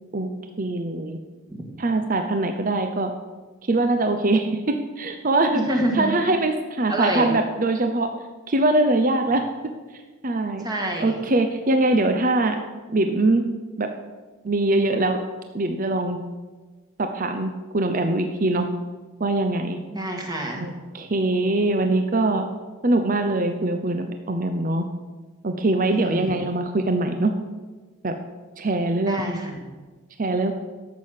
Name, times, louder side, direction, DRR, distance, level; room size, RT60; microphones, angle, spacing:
voice 1, 0.6-1.2 1.8-3.1 3.6-5.6 5.9-8.1 8.5-9.4 10.2-10.7 11.0-12.6 12.9-13.4 13.8-13.9 14.4-15.2 15.5-16.2 17.0-18.7 19.2-19.8 20.5-22.5 22.8-24.9 25.4-27.3 28.0-28.2 28.6-29.4 30.2-30.5, right 2 dB, 40° right, 6 dB, 0.7 m, -22 dB
voice 2, 5.5-6.1 6.9-7.3 10.6-11.2 19.9-20.8 26.0-26.4 29.0-29.7, right 1 dB, 20° right, 0 dB, 1.8 m, -27 dB
13.0 x 7.4 x 6.6 m, 1.3 s
head